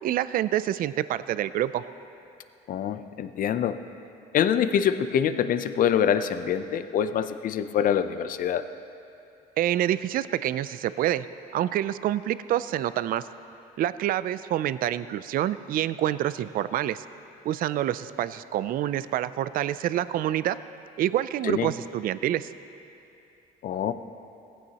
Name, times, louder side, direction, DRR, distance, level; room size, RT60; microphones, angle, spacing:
voice 1, 0.0-1.8 9.6-11.3 11.5-13.2 13.8-17.0 17.4-20.6 21.0-22.5, right 12 dB, 55° right, 15 dB, 0.4 m, -27 dB
voice 2, 2.7-3.8 4.3-8.6 21.4-21.7 23.6-23.9, left 8 dB, 55° left, 10 dB, 0.6 m, -25 dB
19.0 x 15.5 x 2.9 m, 2.7 s
cardioid pair, 110°, 17 cm